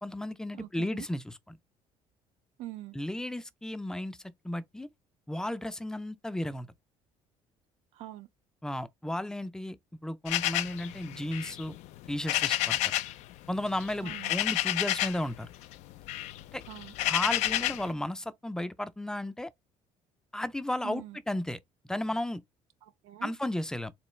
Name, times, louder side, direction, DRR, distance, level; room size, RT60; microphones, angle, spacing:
voice 1, 0.0-1.6 3.0-4.2 4.4-4.9 5.3-6.7 8.6-11.7 12.1-12.9 13.5-15.5 16.5-16.6 17.1-19.5 20.3-21.6 21.9-22.4 23.2-23.9, left 1 dB, 5° left, 0.3 m, -34 dB
voice 2, 0.5-1.1 2.6-3.0 7.9-8.3 14.0-14.3 16.7-16.9 20.8-21.2 22.8-23.3, right 14 dB, 75° right, 0.5 m, -43 dB
sound 1, 10.3-13.2 13.5-15.3 15.6-17.9, left 14 dB, 75° left, 0.4 m, -30 dB
3.6 x 3.1 x 3.1 m
cardioid pair, 130°, 12 cm